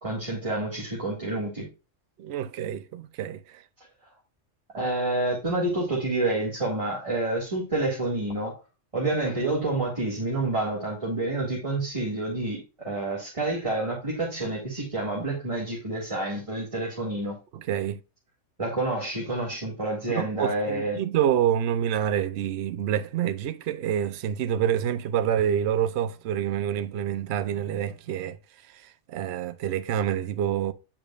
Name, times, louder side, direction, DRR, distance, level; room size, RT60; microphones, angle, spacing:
voice 1, 0.0-1.7 4.7-8.5 8.9-17.4 18.6-21.0, right 2 dB, 25° right, 2.1 m, -28 dB
voice 2, 2.2-3.6 17.5-18.0 20.1-28.4 28.7-30.7, right 9 dB, 65° right, 0.8 m, -27 dB
8.7 x 5.0 x 2.4 m
omnidirectional pair, 1.3 m